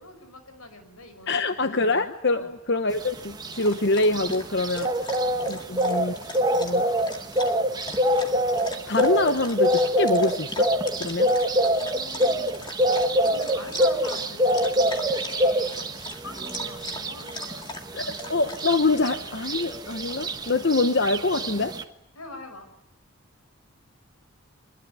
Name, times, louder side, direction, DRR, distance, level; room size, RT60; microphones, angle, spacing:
voice 1, 0.0-1.4 2.3-2.5 5.3-5.6 11.7-12.7 13.3-18.1 22.1-22.7, left 2 dB, 85° left, 8 dB, 6.1 m, -44 dB
voice 2, 1.3-5.1 5.5-6.2 6.6-6.8 8.9-10.7 11.0-11.3 17.9-18.0 18.3-21.7, left 2 dB, 50° left, 9 dB, 1.0 m, -25 dB
sound 1, 3.0-21.8, equal, 20° right, 1.3 m, -25 dB
Dog, 3.1-20.5, left 3 dB, 20° left, 2.2 m, -42 dB
25.5 x 21.0 x 9.9 m, 0.77 s
head